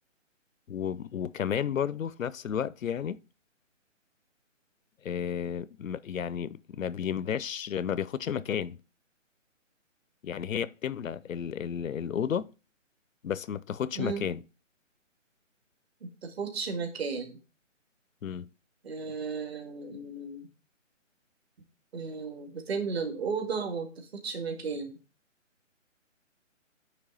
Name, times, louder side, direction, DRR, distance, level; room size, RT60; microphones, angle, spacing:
voice 1, 0.7-3.2 5.0-8.8 10.2-12.5 13.2-14.4 18.2-18.5, left 8 dB, 85° left, 0.6 m, -32 dB
voice 2, 14.0-14.3 16.2-17.4 18.8-20.5 21.9-25.0, right 5 dB, 50° right, 2.0 m, -34 dB
9.0 x 3.4 x 5.3 m
hypercardioid pair, 160°, 39 cm